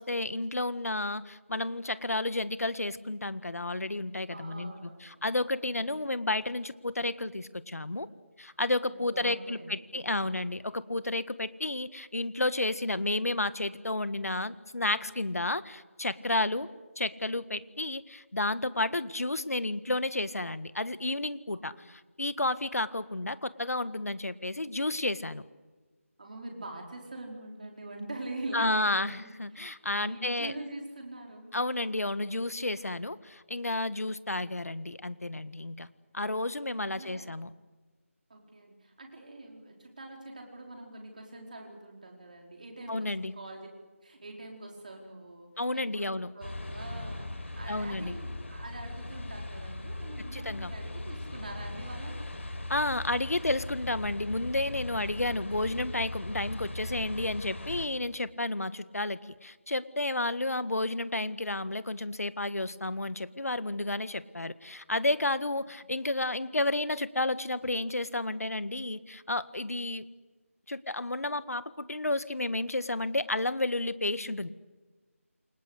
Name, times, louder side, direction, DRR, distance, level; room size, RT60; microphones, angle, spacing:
voice 1, 0.0-8.1 8.4-16.7 17.0-25.4 28.5-30.5 31.5-35.9 36.1-37.5 42.9-43.3 45.6-46.3 47.7-48.2 50.3-50.7 52.7-70.1 70.7-74.5, left 2 dB, 85° left, 14 dB, 1.7 m, -31 dB
voice 2, 4.3-5.2 5.6-5.7 8.9-10.2 21.5-21.9 26.2-31.5 36.7-37.3 38.3-43.7 44.0-46.1 46.3-52.3 60.3-60.7 65.8-65.9, right 2 dB, 35° right, 1 dB, 4.9 m, -44 dB
sound 1, 46.4-57.9, left 1 dB, 55° left, 6.0 m, -39 dB
28.5 x 25.5 x 8.2 m, 1.3 s
figure-of-eight pair, 175°, 8 cm